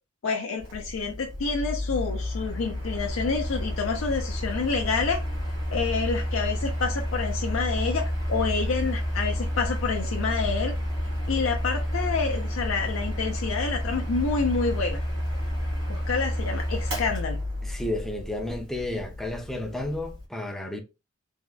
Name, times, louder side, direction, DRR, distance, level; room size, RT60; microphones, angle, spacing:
voice 1, 0.2-5.2 5.7-10.7 11.3-15.0 15.9-17.4, left 4 dB, 75° left, 0.5 m, -28 dB
Mechanical fan, 0.6-20.2, equal, 80° right, 1.8 m, -30 dB
voice 2, 17.6-20.8, left 1 dB, ahead, 0.5 m, -32 dB
3.4 x 2.2 x 2.3 m
head